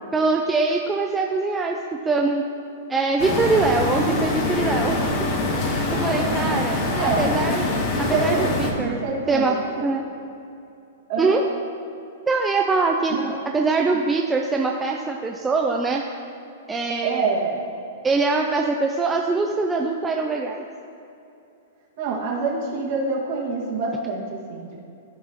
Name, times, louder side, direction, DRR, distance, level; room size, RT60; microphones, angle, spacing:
voice 1, 0.1-1.8 2.1-2.4 2.9-5.3 5.9-6.8 7.2-7.6 8.0-9.0 9.3-9.5 9.8-10.0 11.2-11.4 12.3-13.1 13.5-16.0 16.7-17.2 18.0-20.6, right 3 dB, 10° right, 1 dB, 0.4 m, -23 dB
sound 1, 3.2-8.7, left 2 dB, 35° left, 1.1 m, -24 dB
voice 2, 5.9-6.6 6.9-7.2 7.9-9.9 11.1-11.4 13.1-13.4 17.0-17.6 22.0-24.9, right 4 dB, 45° right, -2 dB, 1.7 m, -27 dB
14.0 x 4.7 x 2.9 m, 2.7 s
hypercardioid pair, 155°, 0 cm